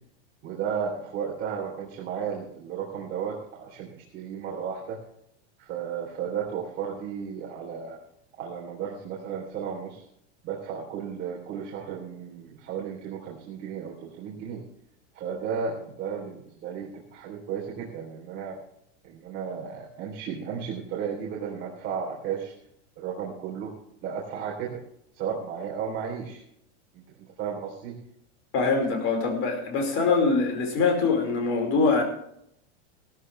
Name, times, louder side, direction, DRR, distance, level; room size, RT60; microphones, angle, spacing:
voice 1, 0.4-5.0 5.6-8.0 8.4-10.0 10.4-14.6 15.2-18.6 19.0-22.5 23.0-23.7 24.0-24.8 25.1-26.4 27.4-28.0, right 7 dB, 30° right, -3 dB, 3.4 m, -34 dB
voice 2, 28.5-32.0, left 4 dB, 35° left, 3 dB, 4.9 m, -23 dB
16.5 x 14.0 x 3.3 m, 0.73 s
supercardioid pair, 155°, 36 cm